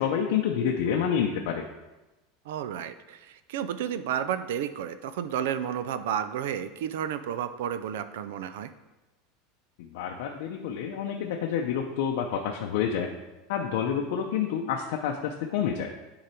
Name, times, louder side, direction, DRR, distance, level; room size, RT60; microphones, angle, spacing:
voice 1, 0.0-1.6 9.8-13.1 13.5-15.9, left 8 dB, 70° left, 1 dB, 0.6 m, -28 dB
voice 2, 2.5-8.7, right 9 dB, 80° right, 12 dB, 0.5 m, -32 dB
10.0 x 3.8 x 4.4 m, 1.1 s
supercardioid pair, 155°, 0 cm